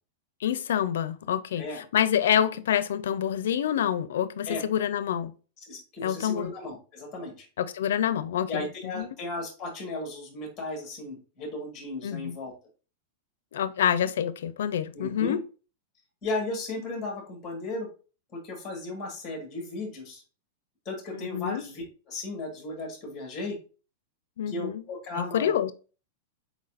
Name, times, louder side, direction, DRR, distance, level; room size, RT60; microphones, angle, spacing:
voice 1, 0.4-5.3 6.0-6.5 7.6-9.1 12.0-12.3 13.5-15.4 21.1-21.6 24.4-24.8 25.2-25.7, left 9 dB, 80° left, 0.5 m, -27 dB
voice 2, 5.7-7.5 8.5-12.5 14.9-15.4 16.2-17.9 18.3-20.2 20.8-23.6 24.5-25.6, left 2 dB, 15° left, 1.5 m, -35 dB
4.6 x 4.0 x 2.5 m
supercardioid pair, 175°, 0 cm